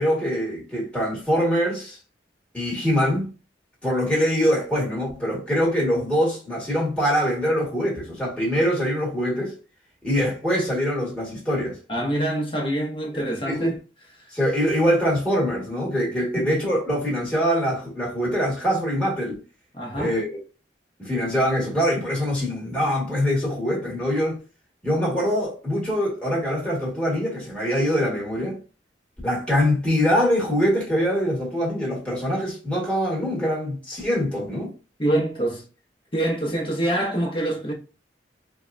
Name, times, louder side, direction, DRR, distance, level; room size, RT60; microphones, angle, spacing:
voice 1, 0.0-2.0 2.5-3.3 3.8-9.5 10.0-11.8 13.1-13.7 14.3-19.4 20.0-20.4 21.0-24.4 24.8-28.6 29.2-34.7, equal, 5° left, 1.4 m, -23 dB
voice 2, 11.9-13.8 16.3-16.5 19.7-20.2 35.0-35.6 36.1-37.7, right 1 dB, 30° left, 1.0 m, -25 dB
4.5 x 2.2 x 2.5 m
head